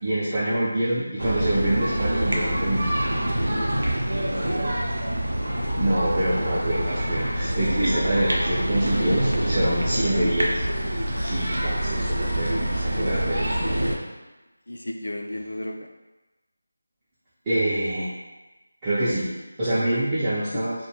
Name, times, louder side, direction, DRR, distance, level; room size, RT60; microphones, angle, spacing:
voice 1, 0.0-2.8 5.7-10.5 11.2-13.4 17.5-18.1 18.8-19.3 19.6-20.7, right 1 dB, 15° right, -12 dB, 0.4 m, -26 dB
sound 1, 1.2-13.9, right 1 dB, 75° right, 0.5 m, -25 dB
voice 2, 3.4-4.6 5.4-5.7 6.4-6.5 10.1-10.3 14.7-15.9 20.5-20.6, left 1 dB, 80° left, 3 dB, 0.3 m, -34 dB
2.3 x 2.1 x 3.0 m, 1.1 s
figure-of-eight pair, 170°, 0 cm